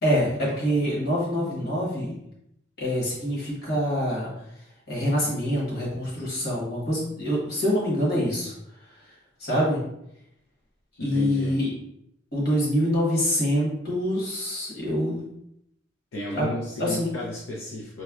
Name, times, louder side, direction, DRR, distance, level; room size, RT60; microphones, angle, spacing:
voice 1, 0.0-2.1 2.8-4.3 4.9-8.5 9.4-9.8 11.0-11.7 12.3-15.2 16.3-16.5 16.8-17.1, equal, 55° left, -5 dB, 1.2 m, -25 dB
voice 2, 11.0-11.5 16.1-18.0, left 1 dB, 85° left, -4 dB, 0.6 m, -33 dB
4.0 x 2.2 x 2.4 m, 0.77 s
head